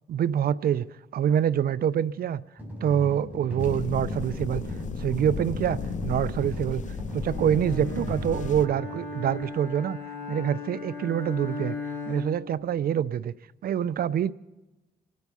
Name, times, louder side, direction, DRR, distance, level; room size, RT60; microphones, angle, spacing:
voice 1, 0.1-0.9 1.1-2.4 2.8-4.6 5.0-6.8 7.1-10.0 10.3-11.8 12.1-13.3 13.6-14.3, right 9 dB, 65° right, 0.5 m, -26 dB
sound 1, 2.6-9.4, right 1 dB, 10° right, 6.5 m, -37 dB
sound 2, 3.6-8.7, left 7 dB, 50° left, 0.6 m, -35 dB
Bowed string instrument, 7.2-12.5, left 2 dB, 15° left, 5.7 m, -37 dB
25.5 x 9.5 x 5.5 m
cardioid pair, 85°, 16 cm